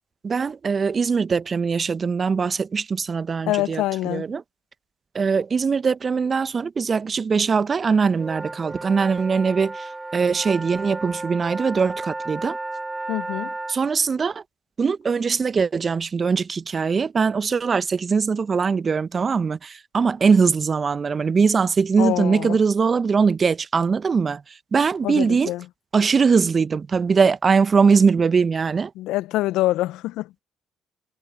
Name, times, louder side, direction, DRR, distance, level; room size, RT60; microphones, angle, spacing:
voice 1, 0.2-4.4 5.1-12.6 13.7-14.4 14.8-24.4 24.7-25.5 25.9-28.9, right 5 dB, 45° right, 1.1 m, -21 dB
voice 2, 3.5-4.3 13.1-13.5 22.0-22.6 25.0-25.6 29.0-30.3, left 16 dB, 75° left, 0.8 m, -25 dB
sound 1, 8.1-13.8, right 2 dB, 20° right, 0.8 m, -33 dB
hypercardioid pair, 45°, 0 cm